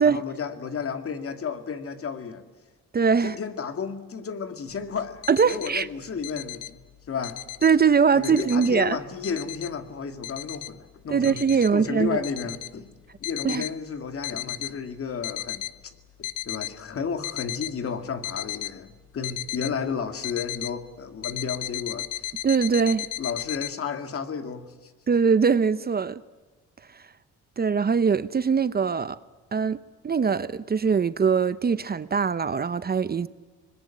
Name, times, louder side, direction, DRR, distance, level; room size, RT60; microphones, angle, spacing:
voice 1, 0.0-2.4 3.2-7.4 8.1-12.9 13.2-15.7 16.2-22.1 23.2-24.9, left 6 dB, 50° left, 2.4 m, -32 dB
voice 2, 2.9-3.4 5.3-5.9 7.6-9.0 11.1-12.2 13.4-13.7 22.4-23.1 25.1-26.2 26.9-27.0 27.6-29.2 29.5-29.8 30.0-33.3, right 6 dB, 30° right, 0.8 m, -22 dB
sound 1, 5.0-5.7 6.2-6.7 7.1-7.7 8.2-8.7 9.2-9.7 10.2-10.7 11.2-11.7 12.2-12.7 13.2-13.7 14.2-14.7 15.1-15.7 16.2-16.7 17.2-17.7 18.2-18.7 19.2-19.7 20.2-20.7 21.2-23.7, left 14 dB, 80° left, 0.9 m, -34 dB
25.0 x 21.0 x 9.0 m
cardioid pair, 90°, 30 cm